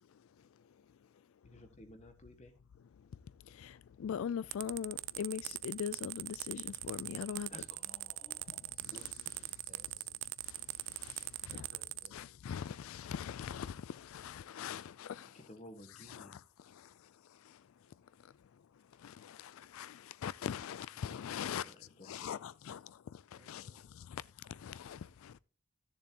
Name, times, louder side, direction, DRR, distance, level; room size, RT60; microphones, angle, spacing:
voice 1, 1.4-2.5 7.5-9.2 15.3-16.4 21.0-21.1 21.6-22.4, left 1 dB, 30° left, 1.3 m, -55 dB
voice 2, 3.6-7.5 10.9-11.7 12.1-15.3 16.1-16.4 19.0-21.7 22.0-24.2 24.5-25.3, left 8 dB, 70° left, 0.3 m, -41 dB
sound 1, 4.5-12.1, right 19 dB, 55° right, 0.3 m, -41 dB
voice 3, 9.3-10.2 11.2-12.2 22.3-22.4 23.4-24.2, right 1 dB, 35° right, 2.4 m, -64 dB
13.5 x 7.1 x 2.9 m
head